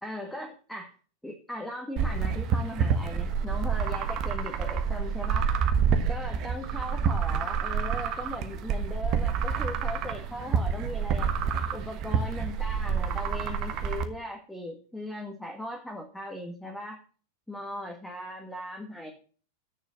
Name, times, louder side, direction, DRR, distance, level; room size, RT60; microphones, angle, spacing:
voice 1, 0.0-0.9 1.2-5.5 6.1-11.3 11.7-17.0 17.5-19.1, left 1 dB, 5° left, 1 dB, 1.8 m, -38 dB
sound 1, 2.0-14.0, right 6 dB, 35° right, 1.2 m, -28 dB
8.5 x 6.9 x 7.8 m, 0.40 s
figure-of-eight pair, 90°, 0 cm